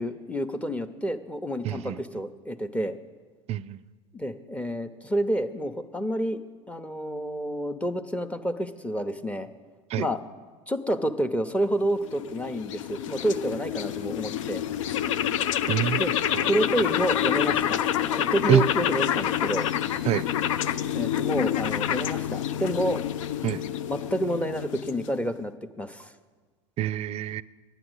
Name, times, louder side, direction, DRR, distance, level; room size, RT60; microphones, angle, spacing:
voice 1, 0.0-3.0 4.1-6.4 6.7-9.5 10.0-10.2 10.7-14.6 16.0-16.1 16.5-17.8 18.1-19.7 20.9-23.0 23.9-26.1, equal, 10° left, 9 dB, 0.8 m, -29 dB
voice 2, 1.6-2.0 3.5-3.8 9.9-10.1 15.7-16.0 16.3-16.5 18.5-18.6 20.1-20.2 23.4-23.6 26.8-27.4, right 12 dB, 40° right, 18 dB, 0.4 m, -25 dB
sound 1, 11.9-25.3, left 10 dB, 75° left, 0.5 m, -28 dB
10.0 x 9.1 x 8.1 m, 1.5 s
hypercardioid pair, 85°, 16 cm